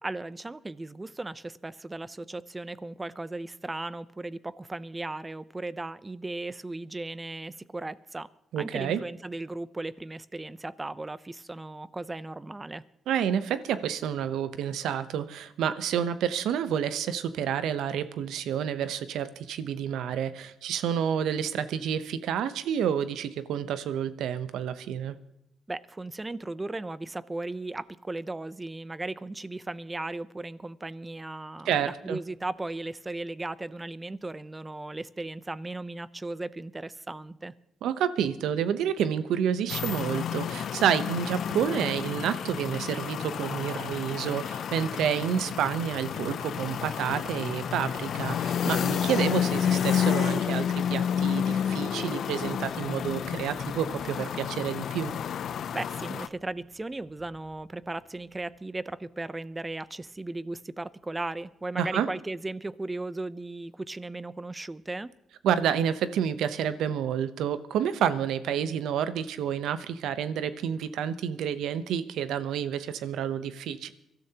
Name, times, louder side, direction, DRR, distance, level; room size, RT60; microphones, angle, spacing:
voice 1, 0.0-8.3 8.6-12.8 25.7-37.5 55.7-65.1, right 2 dB, 20° right, 17 dB, 0.5 m, -36 dB
voice 2, 8.5-9.0 13.1-25.1 31.7-32.2 37.8-55.1 61.8-62.1 65.4-73.9, right 9 dB, 80° right, 13 dB, 0.8 m, -29 dB
sound 1, 39.7-56.3, left 8 dB, 65° left, 0.5 m, -30 dB
sound 2, 46.4-60.6 61.1-61.3 62.3-62.5 63.2-63.3 64.8-64.9, right 2 dB, 60° right, 5.6 m, -55 dB
23.5 x 13.0 x 2.9 m, 0.80 s
cardioid pair, 85°, 0 cm